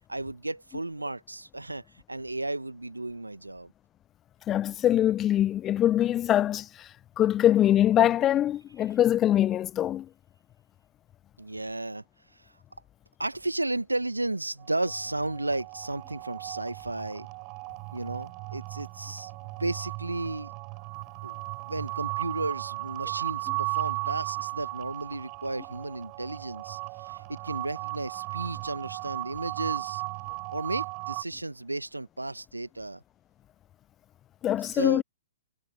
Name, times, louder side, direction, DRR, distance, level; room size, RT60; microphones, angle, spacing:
voice 1, 0.1-3.7 11.4-12.0 12.4-12.5 13.2-17.3 17.9-19.3 19.6-20.5 21.2-30.0 30.5-33.0 34.7-35.0, right 2 dB, 85° right, 1.4 m, -34 dB
voice 2, 4.5-6.9 7.2-10.1 34.4-35.0, left 11 dB, 20° left, 0.4 m, -23 dB
sound 1, 14.6-31.2, right 33 dB, 35° right, 6.5 m, -36 dB
figure-of-eight pair, 115°, 0 cm